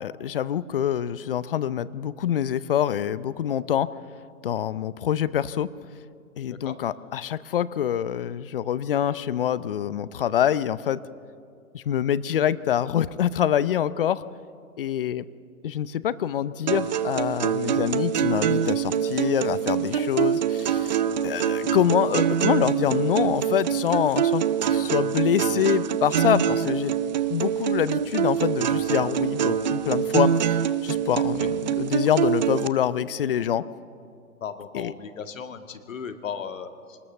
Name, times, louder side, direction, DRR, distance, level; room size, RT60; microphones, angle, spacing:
voice 1, 0.0-3.9 4.4-5.7 6.4-11.0 11.7-14.2 14.8-15.2 15.6-21.0 21.2-26.9 27.3-30.3 30.8-33.6 34.7-34.9, left 10 dB, 40° left, 17 dB, 0.6 m, -25 dB
sound 1, 16.7-32.7, right 9 dB, 30° right, 0.6 m, -25 dB
voice 2, 34.4-37.0, left 7 dB, 60° left, 8 dB, 1.8 m, -36 dB
24.5 x 19.5 x 7.1 m, 2.3 s
hypercardioid pair, 135°, 44 cm